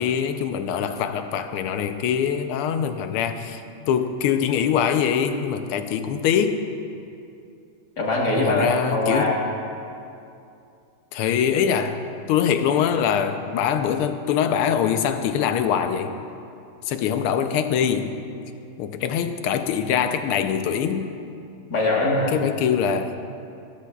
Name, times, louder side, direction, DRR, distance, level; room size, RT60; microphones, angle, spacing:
voice 1, 0.0-3.6 3.9-6.6 8.4-9.3 11.1-12.0 12.3-16.1 16.9-18.2 18.8-21.1 22.3-23.1, left 8 dB, 90° left, 8 dB, 1.6 m, -23 dB
voice 2, 8.0-9.4 21.7-22.3, left 2 dB, 50° left, -3 dB, 2.1 m, -22 dB
16.5 x 14.0 x 2.3 m, 2.6 s
omnidirectional pair, 2.3 m